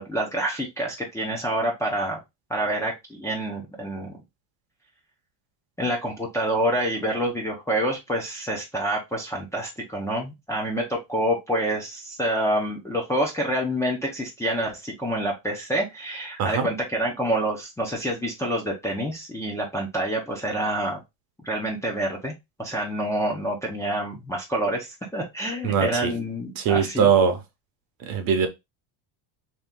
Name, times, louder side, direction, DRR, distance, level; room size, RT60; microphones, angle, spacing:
voice 1, 0.0-2.2 2.5-4.2 5.8-21.0 21.4-22.3 22.6-27.1, right 1 dB, 5° left, 0.6 m, -27 dB
voice 2, 25.6-26.1 26.6-27.4 28.0-28.5, right 7 dB, 45° right, 0.9 m, -21 dB
3.0 x 2.9 x 3.6 m
cardioid pair, 150°, 50 cm